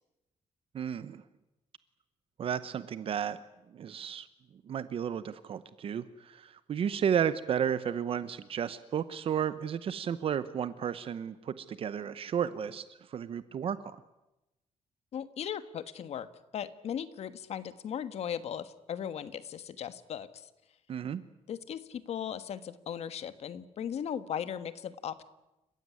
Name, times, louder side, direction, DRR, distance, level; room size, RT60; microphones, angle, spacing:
voice 1, 0.7-1.2 2.4-3.4 3.7-4.3 4.7-14.0 20.9-21.2, right 8 dB, 50° right, 14 dB, 0.9 m, -33 dB
voice 2, 15.1-16.3 16.5-20.5 21.5-25.2, left 9 dB, 60° left, 13 dB, 1.4 m, -37 dB
29.5 x 16.0 x 9.7 m, 0.97 s
wide cardioid pair, 170°, 12 cm